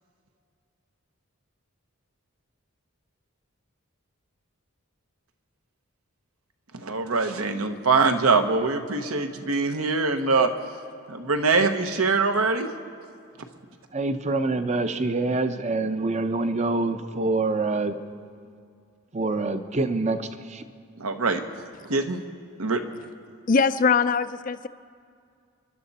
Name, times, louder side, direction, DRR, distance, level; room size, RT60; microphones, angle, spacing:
voice 1, 6.7-10.5 11.1-12.7 21.0-21.4 21.8-22.2 22.6-22.8, right 4 dB, 80° right, 1.1 m, -23 dB
voice 2, 13.9-18.0 19.1-20.6, right 3 dB, 30° right, 0.6 m, -26 dB
voice 3, 23.5-24.7, left 5 dB, 35° left, 0.4 m, -21 dB
28.0 x 11.5 x 4.2 m
head